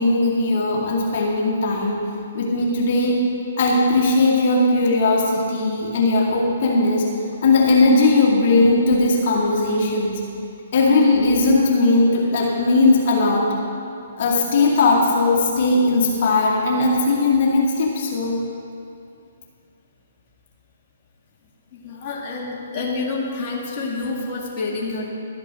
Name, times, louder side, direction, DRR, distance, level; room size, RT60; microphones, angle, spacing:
voice 1, 0.0-2.1 2.3-3.2 3.6-7.1 7.4-10.2 10.7-13.5 14.2-18.4, left 2 dB, 50° left, -3 dB, 2.1 m, -18 dB
voice 2, 21.7-25.1, left 3 dB, 35° left, -4 dB, 2.1 m, -28 dB
12.5 x 8.2 x 6.3 m, 2.5 s
figure-of-eight pair, 130°, 0 cm